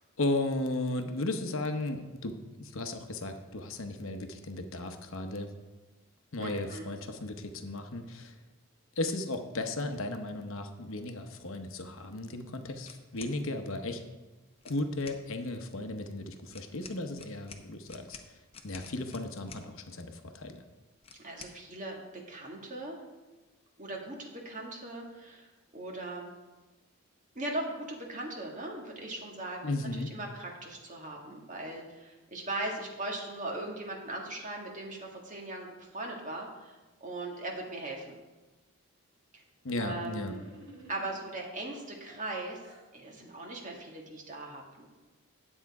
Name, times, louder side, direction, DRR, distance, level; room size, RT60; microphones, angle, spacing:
voice 1, 0.0-5.5 6.3-8.4 9.0-14.0 14.6-18.4 18.6-20.6 29.6-30.1 39.6-40.4, left 2 dB, 60° left, 6 dB, 0.9 m, -35 dB
voice 2, 6.4-6.9 21.2-23.0 23.8-25.5 25.7-26.3 27.4-29.7 30.1-38.1 39.3-39.4 39.8-40.4 40.9-42.6 42.9-44.8, right 2 dB, 35° right, 0 dB, 1.8 m, -39 dB
sound 1, 12.8-13.4 14.6-15.2 16.5-19.7 21.0-21.6, left 5 dB, 25° left, 0.7 m, -49 dB
sound 2, 40.1-41.4 42.1-42.9, equal, 65° right, 3.2 m, -52 dB
10.0 x 7.9 x 4.7 m, 1.2 s
head